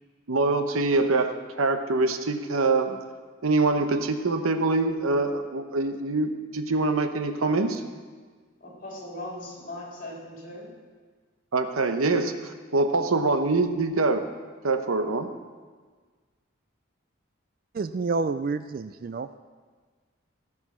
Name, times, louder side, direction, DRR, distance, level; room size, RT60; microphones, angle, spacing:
voice 1, 0.3-3.0 3.4-7.8 11.5-14.3 14.6-15.3, right 3 dB, 90° right, 8 dB, 0.9 m, -24 dB
voice 2, 8.6-10.7, left 1 dB, 40° left, -3 dB, 3.6 m, -39 dB
voice 3, 17.7-19.4, right 4 dB, 45° right, 12 dB, 0.3 m, -29 dB
17.0 x 6.1 x 6.1 m, 1.5 s
head